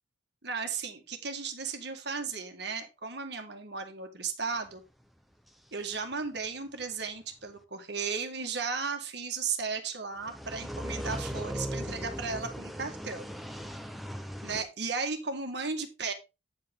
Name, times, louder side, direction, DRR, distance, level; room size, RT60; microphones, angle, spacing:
voice 1, 0.4-4.8 5.7-13.3 14.4-16.1, right 5 dB, 60° right, 5 dB, 1.8 m, -35 dB
sound 1, 10.2-14.6, equal, ahead, 0.8 m, -38 dB
9.5 x 7.7 x 3.6 m, 0.26 s
head